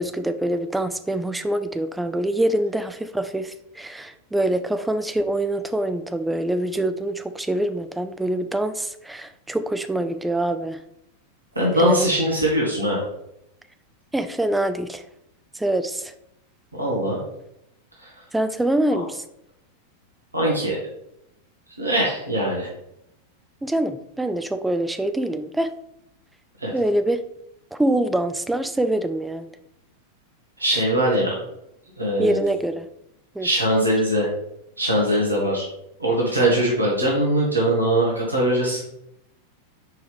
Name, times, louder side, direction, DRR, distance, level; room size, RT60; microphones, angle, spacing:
voice 1, 0.0-10.8 11.8-12.1 14.1-15.0 15.5-16.1 18.3-19.2 23.6-25.7 26.7-27.2 27.7-29.5 32.2-32.9 33.3-33.5, right 1 dB, 5° right, 10 dB, 0.4 m, -25 dB
voice 2, 11.5-13.0 16.7-17.2 18.0-18.1 18.9-19.0 20.3-20.8 21.8-22.7 26.6-26.7 30.6-31.4 32.0-32.4 33.4-34.3 34.8-35.6 36.0-38.8, right 1 dB, 80° right, -4 dB, 1.5 m, -21 dB
6.6 x 4.6 x 3.4 m, 0.79 s
figure-of-eight pair, 90°, 0 cm